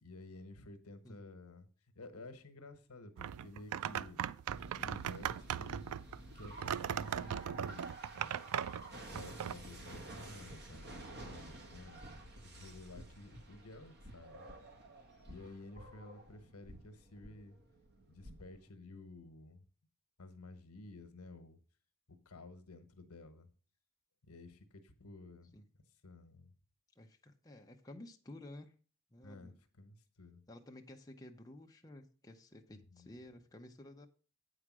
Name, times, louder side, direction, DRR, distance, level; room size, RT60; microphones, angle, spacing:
voice 1, 0.0-1.7 1.9-4.2 4.7-5.8 6.3-8.4 9.1-12.2 12.4-14.5 15.3-17.6 18.1-19.6 20.2-21.6 22.2-23.5 24.2-25.5 26.0-26.5 29.2-30.4 32.7-33.1, left 2 dB, 75° left, 10 dB, 1.1 m, -53 dB
sound 1, 3.2-9.5, right 9 dB, 75° right, 0.3 m, -39 dB
sound 2, 4.5-18.7, right 1 dB, 45° right, 1.6 m, -51 dB
voice 2, 27.0-28.7 29.1-29.5 30.5-34.1, left 1 dB, 15° left, 2 dB, 0.7 m, -53 dB
8.6 x 4.9 x 6.1 m, 0.39 s
head